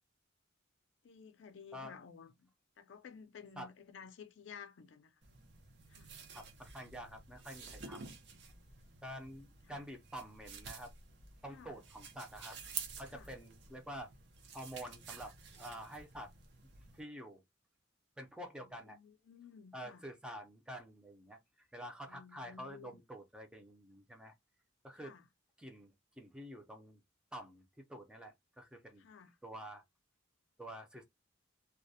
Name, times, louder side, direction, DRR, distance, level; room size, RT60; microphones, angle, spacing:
voice 1, 1.0-2.5 2.8-5.1 5.9-6.1 9.7-9.8 11.5-11.8 13.1-13.3 18.6-20.0 22.1-23.0 25.0-25.2 29.0-29.3, left 6 dB, 65° left, 0.4 m, -54 dB
sound 1, 5.2-17.0, right 5 dB, 60° right, 0.6 m, -50 dB
voice 2, 6.3-8.1 9.0-10.9 11.4-12.6 13.0-14.1 14.5-16.3 16.9-17.4 18.2-19.0 19.7-24.3 24.8-25.2 25.6-27.0 27.3-27.6 27.9-29.0 29.4-29.8 30.6-31.0, equal, 5° right, 0.4 m, -48 dB
2.3 x 2.1 x 2.6 m
head